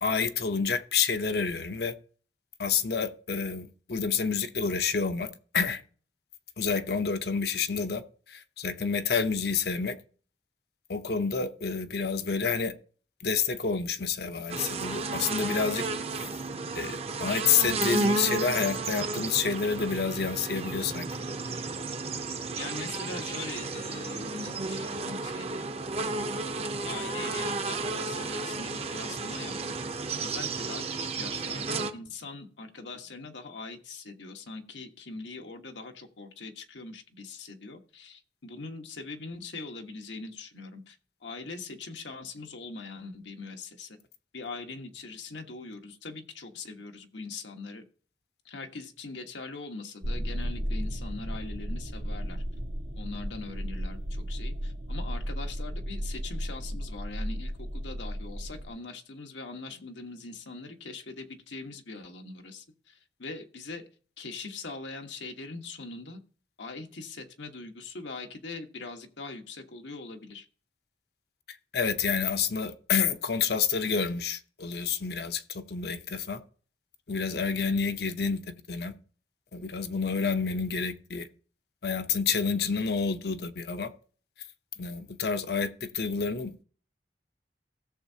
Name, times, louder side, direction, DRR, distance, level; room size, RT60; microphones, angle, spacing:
voice 1, 0.0-1.9 2.6-5.8 6.6-8.0 8.3-10.0 10.9-12.7 13.2-15.8 16.7-21.1 71.7-76.4 77.1-78.9 79.5-81.3 81.8-83.9 84.8-86.6, left 5 dB, 60° left, 0.7 m, -29 dB
sound 1, 14.5-31.9, right 3 dB, 35° right, 0.7 m, -33 dB
voice 2, 22.6-25.7 26.8-29.7 30.2-41.0 41.2-44.0 44.3-47.8 48.4-52.4 52.9-63.8 64.2-66.2 66.6-70.4, left 3 dB, 90° left, 1.4 m, -42 dB
sound 2, 50.0-58.7, equal, 90° right, 1.7 m, -34 dB
16.5 x 7.2 x 2.8 m
head